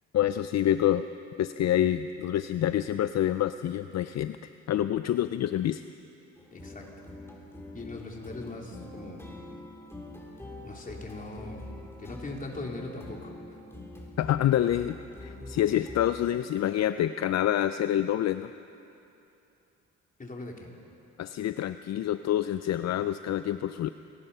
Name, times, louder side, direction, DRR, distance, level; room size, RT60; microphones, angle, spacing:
voice 1, 0.1-1.0 1.4-4.4 4.7-5.8 14.2-18.5 21.2-23.9, left 11 dB, 60° left, 11 dB, 0.6 m, -27 dB
sound 1, 6.4-16.4, left 1 dB, 10° left, 4.2 m, -45 dB
voice 2, 6.5-7.1 7.7-9.2 10.6-11.6 12.0-13.6 20.2-20.7, left 2 dB, 25° left, 0 dB, 3.7 m, -40 dB
27.5 x 20.0 x 5.7 m, 2.8 s
cardioid pair, 90°, 30 cm